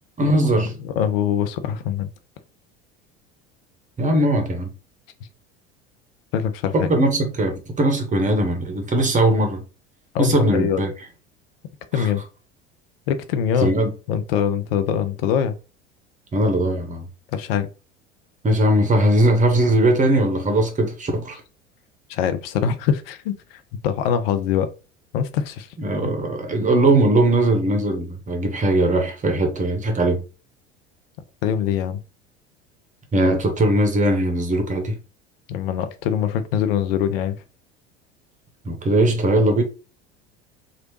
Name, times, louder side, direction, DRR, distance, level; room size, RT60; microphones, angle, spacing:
voice 1, 0.2-0.7 4.0-4.7 6.7-9.6 10.2-10.9 11.9-12.1 13.6-13.9 16.3-17.1 18.4-21.4 25.8-30.2 33.1-35.0 38.6-39.6, right 1 dB, 25° right, 1.0 m, -19 dB
voice 2, 0.8-2.1 6.3-6.9 10.1-10.8 11.9-12.2 13.1-13.7 14.1-15.5 17.3-17.7 22.1-24.7 25.1-25.7 31.4-32.0 35.5-37.4, left 8 dB, 60° left, 0.5 m, -23 dB
3.0 x 2.5 x 3.0 m
figure-of-eight pair, 70°, 33 cm